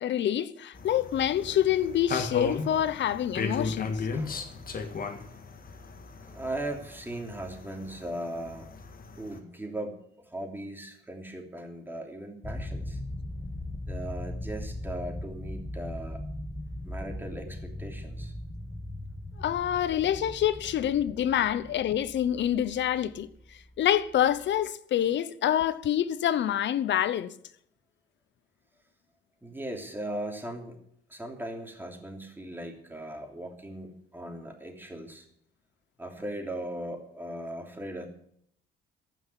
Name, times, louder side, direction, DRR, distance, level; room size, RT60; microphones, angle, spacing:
voice 1, 0.0-4.0 19.4-23.3 23.8-27.3, left 10 dB, 65° left, 0.9 m, -26 dB
sound 1, 0.7-9.4, left 4 dB, 45° left, 1.8 m, -36 dB
voice 2, 4.1-4.5 6.2-8.7 9.2-10.0 10.2-13.0 13.9-16.2 16.8-18.3 29.4-30.8 31.1-35.3 36.0-38.1, right 1 dB, 10° right, 3.1 m, -38 dB
sound 2, 12.4-24.6, left 1 dB, 15° left, 1.1 m, -39 dB
14.5 x 6.1 x 9.8 m
cardioid pair, 90°, 20 cm